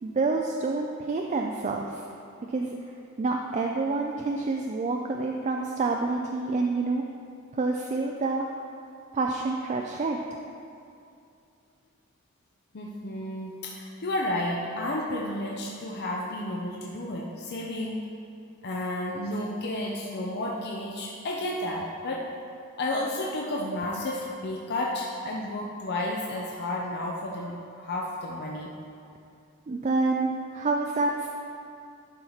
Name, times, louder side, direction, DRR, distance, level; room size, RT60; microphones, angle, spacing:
voice 1, 0.0-2.0 2.5-2.8 3.2-7.0 7.5-8.5 9.1-10.2 29.7-31.3, right 3 dB, 35° right, 1 dB, 0.3 m, -28 dB
voice 2, 12.7-18.0 18.6-22.2 22.8-28.7, left 1 dB, 50° left, -2 dB, 0.6 m, -32 dB
11.0 x 4.5 x 4.0 m, 2.5 s
head